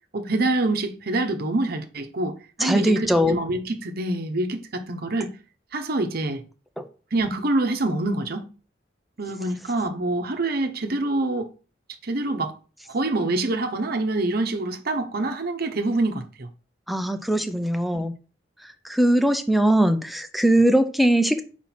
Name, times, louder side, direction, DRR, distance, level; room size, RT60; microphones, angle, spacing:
voice 1, 0.1-5.3 5.7-6.4 7.1-8.5 9.2-11.5 12.0-12.5 12.9-16.5, right 2 dB, 55° right, 0.9 m, -26 dB
voice 2, 2.6-3.3 6.8-6.9 16.9-18.1 18.9-21.4, right 1 dB, ahead, 0.6 m, -20 dB
4.5 x 4.4 x 5.8 m
head